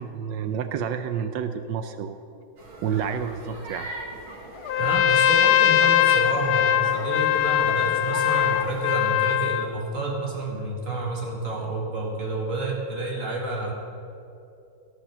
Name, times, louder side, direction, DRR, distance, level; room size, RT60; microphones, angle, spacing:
voice 1, 0.0-2.2 2.8-3.9, right 7 dB, 75° right, 9 dB, 1.2 m, -29 dB
sound 1, 2.6-9.3, right 1 dB, 90° right, 3.0 m, -40 dB
Trumpet, 4.6-9.7, left 11 dB, 85° left, 1.5 m, -21 dB
voice 2, 4.8-13.7, right 2 dB, 40° right, -1 dB, 2.2 m, -29 dB
16.0 x 6.6 x 6.7 m, 2.7 s
omnidirectional pair, 2.2 m